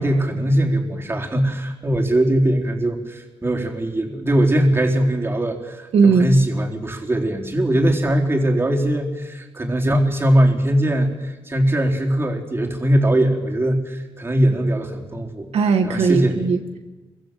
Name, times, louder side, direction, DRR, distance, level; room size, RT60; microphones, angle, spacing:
voice 1, 0.0-15.5 15.8-16.4, right 1 dB, 25° right, 1 dB, 4.0 m, -20 dB
voice 2, 5.9-6.3 15.5-16.8, right 5 dB, 80° right, 5 dB, 2.1 m, -17 dB
27.5 x 23.5 x 7.8 m, 1.2 s
wide cardioid pair, 110°, 10 cm